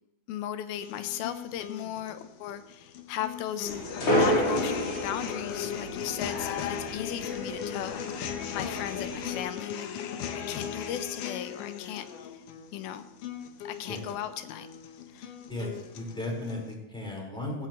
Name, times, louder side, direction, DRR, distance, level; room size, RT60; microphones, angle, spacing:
voice 1, 0.3-3.7 4.1-8.2 8.5-9.9 10.5-12.4 12.7-13.1 13.6-14.7 15.1-15.3, left 11 dB, 85° left, 10 dB, 2.6 m, -36 dB
sound 1, 0.7-16.7, left 8 dB, 70° left, 2.4 m, -38 dB
sound 2, 3.6-9.4, equal, 40° left, 2.8 m, -31 dB
voice 2, 15.5-17.7, left 1 dB, ahead, -3 dB, 3.9 m, -35 dB
17.0 x 16.0 x 3.1 m, 0.93 s
omnidirectional pair, 4.3 m